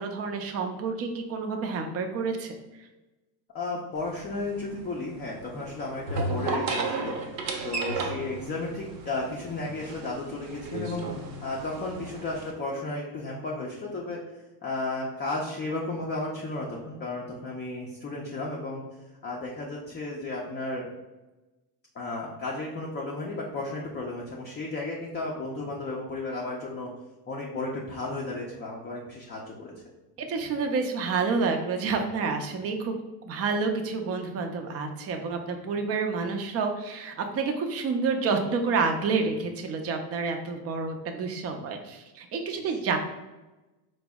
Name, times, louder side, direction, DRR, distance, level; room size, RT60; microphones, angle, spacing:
voice 1, 0.0-2.6 30.2-32.9 33.3-43.0, right 4 dB, 30° right, 5 dB, 0.5 m, -29 dB
voice 2, 3.5-7.2 7.6-18.8 19.2-20.9 21.9-26.9 27.3-29.7 42.6-42.8, left 2 dB, 20° left, -3 dB, 0.5 m, -34 dB
sound 1, 4.0-12.5, right 3 dB, 70° right, 0.9 m, -34 dB
4.0 x 2.0 x 3.4 m, 1.1 s
supercardioid pair, 100°, 48 cm